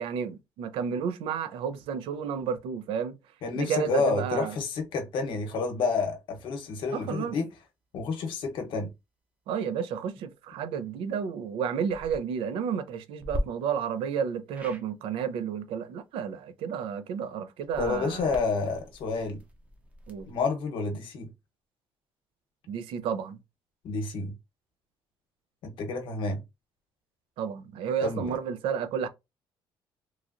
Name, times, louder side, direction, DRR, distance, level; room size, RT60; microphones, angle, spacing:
voice 1, 0.0-3.2 3.5-4.6 6.9-7.4 9.5-18.3 20.1-20.3 22.7-23.4 27.4-29.1, right 7 dB, 85° right, 0.4 m, -31 dB
voice 2, 3.4-7.5 7.9-8.9 17.8-19.4 20.3-21.3 23.8-24.3 25.6-26.4 28.0-28.3, left 4 dB, 65° left, 0.9 m, -29 dB
sound 1, 11.9-12.2 13.2-13.4 14.5-14.8 17.6-20.4, equal, 15° right, 0.6 m, -38 dB
3.1 x 2.4 x 2.5 m
cardioid pair, 135°, 9 cm